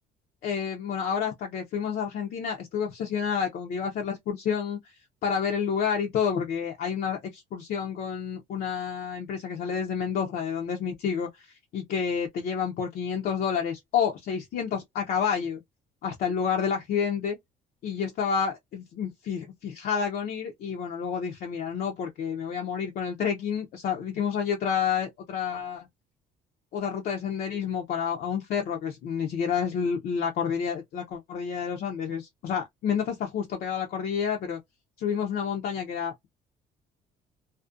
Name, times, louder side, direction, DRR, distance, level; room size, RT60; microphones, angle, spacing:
voice 1, 0.4-4.8 5.2-11.5 11.7-15.6 16.0-17.4 17.8-25.9 26.7-34.6 35.0-36.3, left 7 dB, 60° left, 0.5 m, -29 dB
2.4 x 2.1 x 2.4 m
cardioid pair, 110°, 17 cm